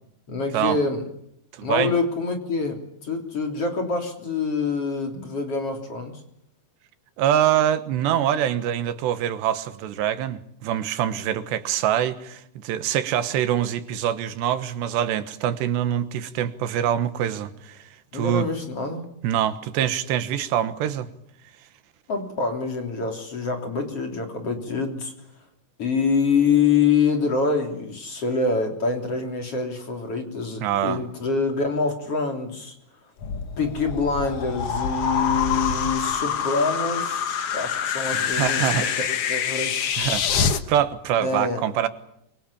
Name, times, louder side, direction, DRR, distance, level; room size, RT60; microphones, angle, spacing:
voice 1, 0.3-1.0 1.6-6.2 18.1-19.0 22.1-25.1 25.8-32.7 33.6-39.0 39.3-40.0 41.2-41.6, left 4 dB, 35° left, 4.0 m, -25 dB
voice 2, 1.5-1.9 7.2-17.8 18.1-18.5 19.2-21.1 30.6-31.0 38.1-38.9 40.0-40.3 40.7-41.9, right 10 dB, 90° right, 3.5 m, -24 dB
sound 1, 33.2-40.6, left 7 dB, 85° left, 1.3 m, -26 dB
25.5 x 24.0 x 8.7 m
omnidirectional pair, 4.9 m